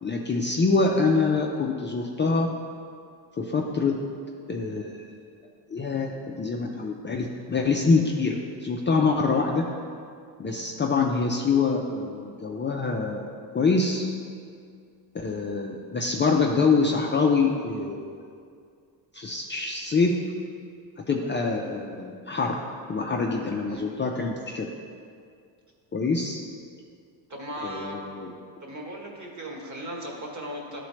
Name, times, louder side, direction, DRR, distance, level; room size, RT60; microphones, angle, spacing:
voice 1, 0.0-2.5 3.4-4.0 4.5-5.0 5.7-9.7 10.4-14.1 15.1-18.2 19.1-20.2 21.1-22.6 22.9-24.7 25.9-26.4 27.6-28.3, left 4 dB, 25° left, 0 dB, 0.6 m, -25 dB
voice 2, 27.3-28.0 28.6-30.8, right 1 dB, 35° right, -1 dB, 1.9 m, -37 dB
11.5 x 4.2 x 3.2 m, 2.2 s
supercardioid pair, 75°, 50 cm